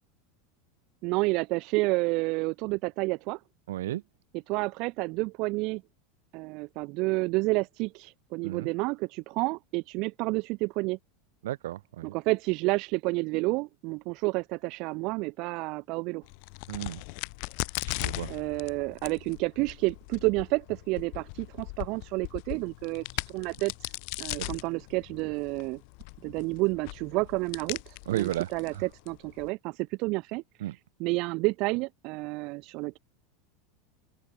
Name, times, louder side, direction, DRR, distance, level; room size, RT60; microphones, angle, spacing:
voice 1, 1.0-3.4 4.5-5.8 6.3-11.0 12.1-16.2 18.3-23.9 24.2-25.8 26.2-30.4 31.0-33.0, right 25 dB, 55° right, 0.5 m, -30 dB
voice 2, 3.7-4.0 8.4-8.7 11.4-12.1 16.7-17.0 18.0-18.3 24.4-24.5 28.1-28.8 30.6-30.7, right 14 dB, 85° right, 3.2 m, -33 dB
Crack, 16.2-29.5, left 40 dB or more, 60° left, 1.7 m, -39 dB
open air
supercardioid pair, 130°, 0 cm